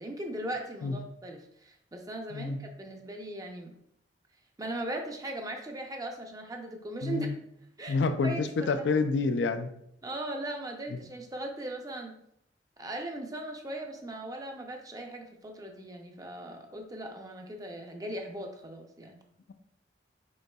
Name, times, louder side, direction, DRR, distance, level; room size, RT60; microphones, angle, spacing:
voice 1, 0.0-3.7 4.6-7.3 7.8-8.0 8.2-8.9 10.0-12.2 12.8-19.2, right 1 dB, 20° right, 3 dB, 0.5 m, -39 dB
voice 2, 7.0-7.3 7.9-9.7, left 4 dB, 75° left, 9 dB, 0.4 m, -28 dB
5.3 x 3.9 x 2.3 m, 0.73 s
head